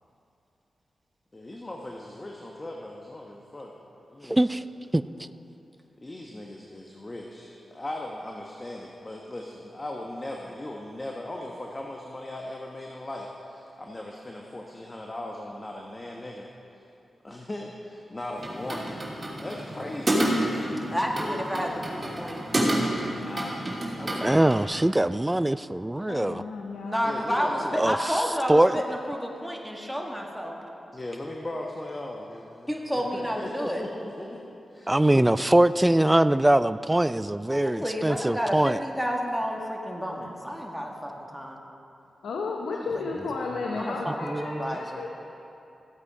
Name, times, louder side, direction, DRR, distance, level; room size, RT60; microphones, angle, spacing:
voice 1, 1.3-3.7 4.1-4.6 5.2-5.3 6.0-16.8 17.2-19.0 19.4-20.3 20.8-20.9 23.2-23.6 24.0-24.5 27.0-27.8 30.9-35.4, left 1 dB, 30° left, 0 dB, 1.2 m, -38 dB
voice 2, 4.3-4.6 4.9-5.0 24.2-26.4 27.8-28.0 28.5-28.7 34.9-38.8 44.3-44.8, right 1 dB, 15° right, 14 dB, 0.4 m, -22 dB
sound 1, 18.3-24.6, right 1 dB, 35° right, 2.8 m, -29 dB
voice 3, 20.9-22.4 26.8-30.6 32.7-33.8 37.5-41.6 42.7-42.8 43.8-45.0, equal, 5° left, 0 dB, 2.0 m, -30 dB
voice 4, 26.1-27.9 42.2-45.1, left 3 dB, 85° left, 0 dB, 0.8 m, -34 dB
14.5 x 8.3 x 4.9 m, 2.8 s
cardioid pair, 45°, 0 cm